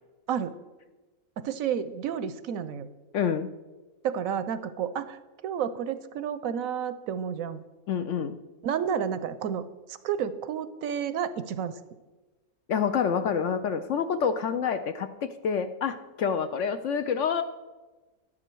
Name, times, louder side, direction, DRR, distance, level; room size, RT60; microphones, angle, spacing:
voice 1, 1.4-2.9 4.0-7.6 8.6-11.7, right 8 dB, 70° right, 13 dB, 0.9 m, -31 dB
voice 2, 3.1-3.5 7.9-8.4 12.7-17.4, left 7 dB, 65° left, 9 dB, 0.8 m, -27 dB
12.0 x 9.9 x 4.5 m, 1.2 s
omnidirectional pair, 1.6 m